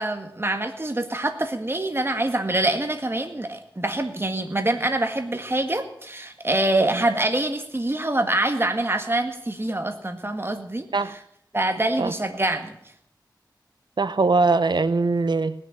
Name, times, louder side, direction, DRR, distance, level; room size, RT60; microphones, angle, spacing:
voice 1, 0.0-11.2 11.5-12.7, right 1 dB, 30° right, 7 dB, 1.8 m, -25 dB
voice 2, 14.0-15.5, right 3 dB, 70° right, 13 dB, 0.8 m, -21 dB
18.5 x 6.8 x 8.7 m, 0.71 s
wide cardioid pair, 50°, 8 cm